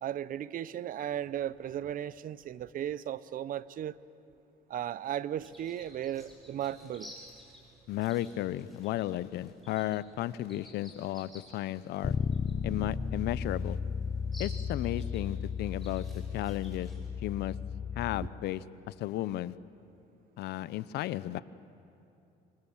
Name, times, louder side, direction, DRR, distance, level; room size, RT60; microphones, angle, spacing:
voice 1, 0.0-4.0 4.7-7.1, right 10 dB, 55° right, 18 dB, 0.7 m, -36 dB
sound 1, 5.4-17.1, left 1 dB, ahead, 6.6 m, -54 dB
voice 2, 7.9-12.2 12.6-13.8 14.4-16.9 17.2-17.6 18.0-19.5 20.4-21.4, left 14 dB, 75° left, 18 dB, 0.7 m, -34 dB
Bass guitar, 12.0-18.3, left 6 dB, 30° left, 0.8 m, -34 dB
26.5 x 25.5 x 7.3 m, 2.7 s
cardioid pair, 110°, 17 cm